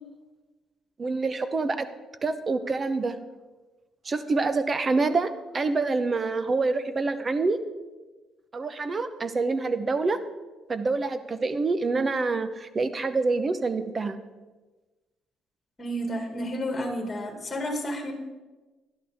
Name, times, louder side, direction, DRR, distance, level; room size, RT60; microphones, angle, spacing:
voice 1, 1.0-1.9 2.2-3.1 4.0-7.6 8.5-10.2 10.7-14.2, right 3 dB, 30° right, 11 dB, 0.8 m, -26 dB
voice 2, 15.8-18.1, equal, 25° left, 2 dB, 2.3 m, -31 dB
12.5 x 11.5 x 3.6 m, 1.2 s
cardioid pair, 105°, 0 cm